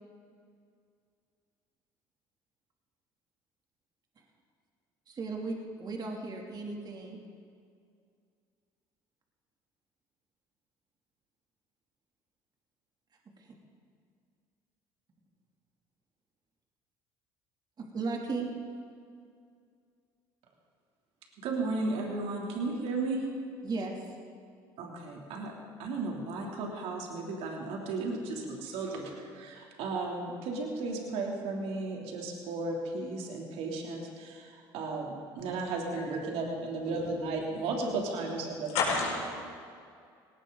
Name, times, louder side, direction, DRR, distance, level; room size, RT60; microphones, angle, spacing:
voice 1, 5.1-7.2 17.8-18.5 23.6-23.9, right 3 dB, 40° right, 0 dB, 2.8 m, -35 dB
voice 2, 21.4-23.2 24.8-25.5 25.8-38.7, right 3 dB, 70° right, 0 dB, 3.0 m, -34 dB
voice 3, 35.9-37.9 38.4-39.2, left 4 dB, 75° left, -3 dB, 5.1 m, -35 dB
18.5 x 18.0 x 3.9 m, 2.3 s
supercardioid pair, 70°, 11 cm